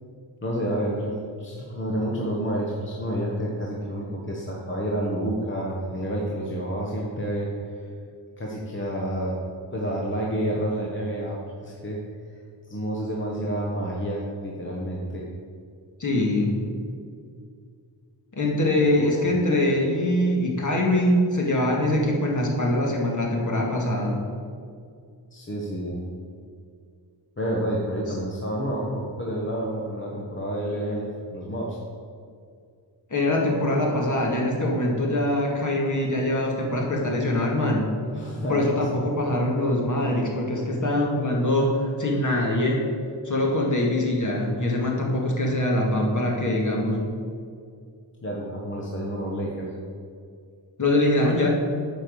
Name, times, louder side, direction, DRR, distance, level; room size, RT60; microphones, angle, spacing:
voice 1, 0.4-7.9 8.4-9.4 9.7-12.0 12.3-12.4 12.7-15.2 19.0-19.2 25.3-26.0 27.4-31.8 38.1-38.9 48.2-49.7, right 1 dB, 25° left, -3 dB, 1.2 m, -29 dB
voice 2, 16.0-16.5 18.3-24.2 33.1-37.9 38.5-42.8 43.2-47.0 50.8-51.5, left 1 dB, 40° left, -2 dB, 2.2 m, -23 dB
9.0 x 5.4 x 8.0 m, 2.2 s
wide cardioid pair, 130°, 45 cm